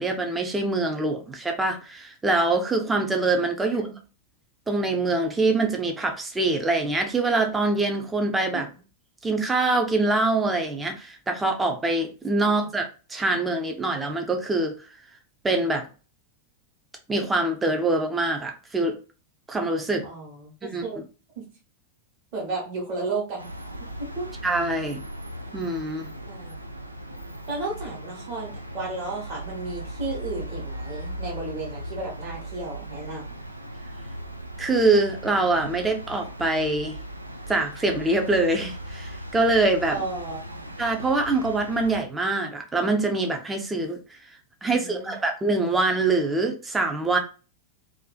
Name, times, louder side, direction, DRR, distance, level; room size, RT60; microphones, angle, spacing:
voice 1, 0.0-3.9 4.7-8.7 9.2-14.8 15.4-15.9 17.1-19.0 19.5-20.1 20.7-20.8 24.4-25.0 25.5-26.1 34.6-37.0 37.5-40.0 40.8-44.0 44.6-47.2, right 2 dB, 15° right, 0.5 m, -24 dB
voice 2, 20.0-21.0 21.4-21.5 22.3-23.5 24.0-24.3 24.8-25.0 26.3-26.6 27.5-33.4 39.9-40.7 44.7-45.1, right 3 dB, 40° right, 1.1 m, -33 dB
sound 1, 23.4-42.0, right 1 dB, 85° right, 0.3 m, -38 dB
2.5 x 2.4 x 2.3 m
figure-of-eight pair, 90°, 0 cm